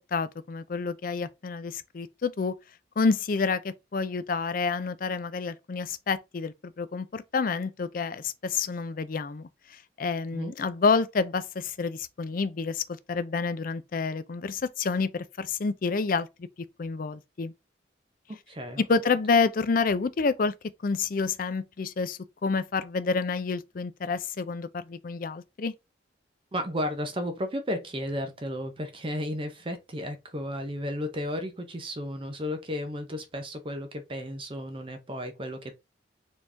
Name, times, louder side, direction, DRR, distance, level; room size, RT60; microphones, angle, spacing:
voice 1, 0.1-2.5 3.0-16.5 16.8-17.5 18.8-20.5 20.8-25.7, left 4 dB, 50° left, 0.4 m, -28 dB
voice 2, 18.5-18.8 26.5-35.7, equal, 30° right, 0.7 m, -33 dB
4.4 x 3.0 x 3.3 m
head